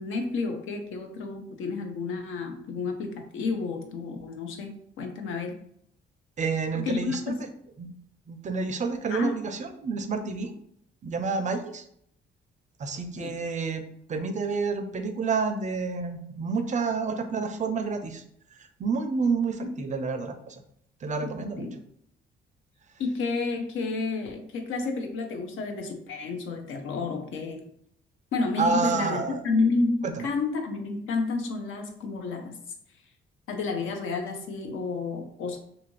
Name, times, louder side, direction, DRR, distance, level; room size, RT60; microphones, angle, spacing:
voice 1, 0.0-5.6 6.7-7.5 9.1-9.5 13.2-13.4 19.6-19.8 21.2-21.8 23.0-27.6 28.3-32.6 33.5-35.6, left 3 dB, 80° left, 4 dB, 0.6 m, -30 dB
voice 2, 6.4-7.2 7.8-7.9 8.3-10.5 11.0-11.8 12.8-13.8 14.1-18.2 18.8-20.6 21.0-21.7 28.6-29.4 30.0-30.3, right 4 dB, 40° right, 8 dB, 0.4 m, -29 dB
2.6 x 2.4 x 3.0 m, 0.69 s
cardioid pair, 90°, 20 cm